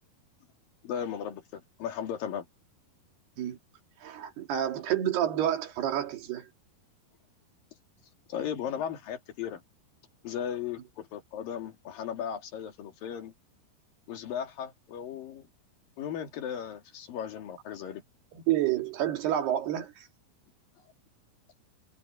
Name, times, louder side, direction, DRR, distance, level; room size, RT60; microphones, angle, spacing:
voice 1, 0.8-2.5 8.3-9.6 10.2-13.3 14.1-15.5 16.0-18.0, left 8 dB, 60° left, 3.9 m, -36 dB
voice 2, 4.0-6.5 18.3-20.1, right 11 dB, 80° right, 4.4 m, -29 dB
omnidirectional pair, 4.6 m